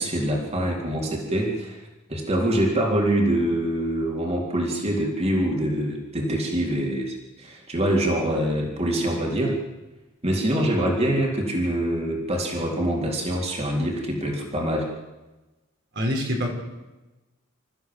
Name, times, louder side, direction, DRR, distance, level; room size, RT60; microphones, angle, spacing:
voice 1, 0.0-1.8 2.1-9.6 10.2-14.9, right 1 dB, 30° right, -1 dB, 3.8 m, -25 dB
voice 2, 15.9-16.5, equal, 55° right, 1 dB, 4.7 m, -25 dB
27.5 x 14.5 x 7.9 m, 1.1 s
head